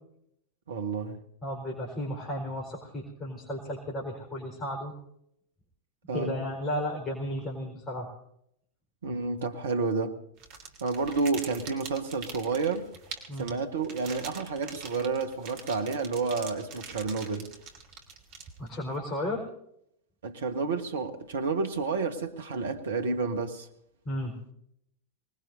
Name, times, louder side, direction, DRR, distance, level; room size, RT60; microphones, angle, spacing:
voice 1, 0.7-1.2 6.1-6.4 9.0-10.2 10.8-12.9 13.4-17.5 20.2-23.7, right 4 dB, 65° right, 1.3 m, -30 dB
voice 2, 1.4-4.9 6.1-8.1 13.3-13.5 18.6-19.4 24.0-24.4, left 1 dB, 20° left, 4.5 m, -34 dB
sound 1, 10.4-18.9, right 5 dB, 45° right, 3.1 m, -44 dB
25.5 x 20.0 x 2.7 m
figure-of-eight pair, 90°, 0 cm